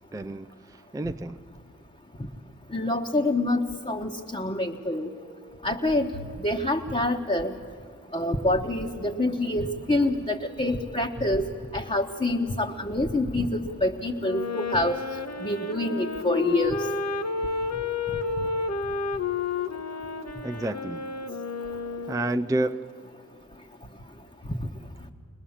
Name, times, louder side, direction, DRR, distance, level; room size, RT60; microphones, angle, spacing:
voice 1, 0.1-1.4 20.4-21.0 22.1-22.9, right 1 dB, 10° right, 9 dB, 0.4 m, -30 dB
voice 2, 2.7-5.1 5.6-6.1 6.4-7.5 8.1-11.4 11.7-15.0 15.4-16.9, left 1 dB, 20° left, 0 dB, 1.2 m, -26 dB
Wind instrument woodwind instrument, 14.2-22.5, left 4 dB, 55° left, 1.2 m, -31 dB
22.0 x 20.5 x 7.3 m, 2.4 s
cardioid pair, 50°, 32 cm